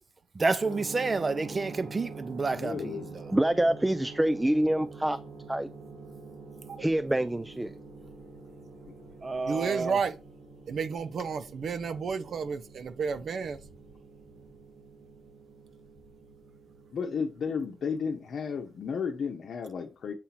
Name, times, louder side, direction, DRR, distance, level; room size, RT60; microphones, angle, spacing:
voice 1, 0.3-3.3 9.2-10.0, right 3 dB, 35° right, 0.7 m, -30 dB
sound 1, 0.6-18.9, right 4 dB, 85° right, 1.3 m, -47 dB
voice 2, 2.5-3.2 16.9-20.1, left 6 dB, 70° left, 0.8 m, -33 dB
voice 3, 3.3-5.2 5.5-5.7 6.8-7.7, right 1 dB, 10° right, 0.3 m, -26 dB
voice 4, 9.5-10.1 10.7-13.6, right 5 dB, 65° right, 0.6 m, -31 dB
7.7 x 2.9 x 5.7 m
wide cardioid pair, 115°, 0 cm